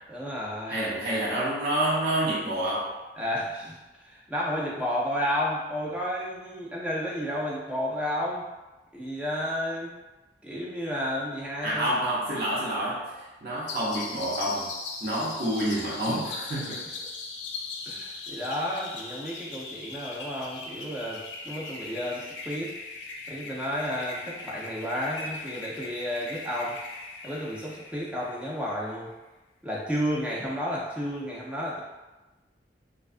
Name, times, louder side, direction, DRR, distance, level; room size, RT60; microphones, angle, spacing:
voice 1, 0.1-0.9 3.2-8.5 8.9-10.0 10.4-12.0 16.6-16.7 17.8-22.8 23.3-26.8 27.2-29.1 29.6-31.8, equal, 5° right, -5 dB, 0.3 m, -32 dB
voice 2, 0.7-2.9 11.6-13.1 13.4-14.7 15.0-16.8, right 1 dB, 55° right, -8 dB, 0.7 m, -28 dB
sound 1, 13.7-28.9, left 3 dB, 90° left, 0.4 m, -39 dB
2.4 x 2.3 x 2.4 m, 1.1 s
head